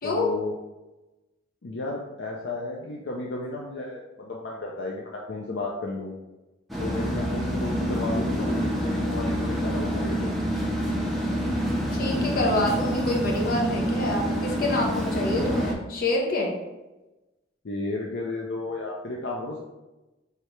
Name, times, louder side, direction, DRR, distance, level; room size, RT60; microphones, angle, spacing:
voice 1, 0.0-0.5 1.6-6.1 6.8-10.4 17.6-19.6, left 2 dB, 70° left, -2 dB, 0.6 m, -33 dB
sound 1, 6.7-15.7, equal, ahead, 0.8 m, -27 dB
voice 2, 11.9-16.5, left 1 dB, 50° left, -1 dB, 1.0 m, -27 dB
4.7 x 3.3 x 3.2 m, 1.1 s
head